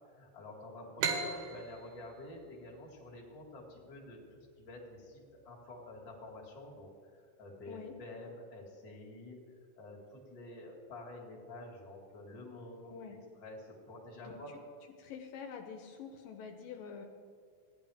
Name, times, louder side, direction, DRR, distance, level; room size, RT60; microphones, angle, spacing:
voice 1, 0.1-9.4 9.8-14.5, left 1 dB, 30° left, -2 dB, 1.9 m, -49 dB
sound 1, 1.0-4.4, right 5 dB, 70° right, 2.3 m, -38 dB
voice 2, 15.0-17.1, left 6 dB, 80° left, 3 dB, 2.4 m, -46 dB
15.5 x 9.9 x 3.5 m, 2.2 s
omnidirectional pair, 4.2 m